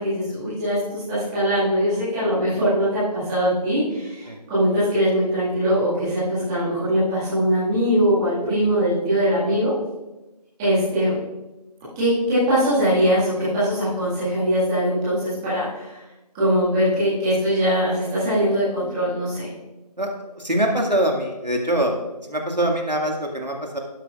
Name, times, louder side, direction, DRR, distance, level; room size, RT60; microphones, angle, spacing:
voice 1, 0.0-9.7 10.6-11.2 11.9-16.0 16.3-19.5, equal, 5° right, -13 dB, 1.8 m, -21 dB
voice 2, 20.4-21.9 22.3-23.8, right 1 dB, 90° right, 1 dB, 2.0 m, -23 dB
12.0 x 11.0 x 2.4 m, 1.0 s
figure-of-eight pair, 165°, 21 cm